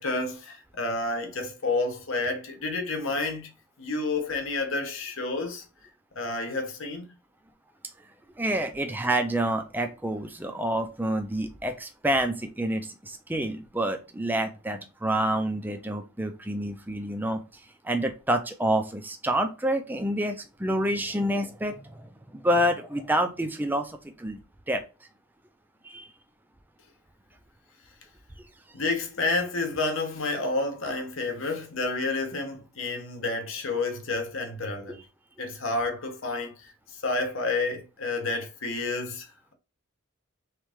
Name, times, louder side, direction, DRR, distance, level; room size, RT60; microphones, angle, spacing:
voice 1, 0.0-3.5 3.8-5.6 6.2-7.1 28.7-35.0 35.4-36.5 37.0-39.3, left 3 dB, 60° left, 1.0 m, -30 dB
voice 2, 8.4-17.4 17.8-22.0 22.3-24.4 24.7-24.8 25.8-26.1 34.9-35.0, right 1 dB, 10° right, 0.4 m, -28 dB
3.6 x 3.2 x 3.4 m
head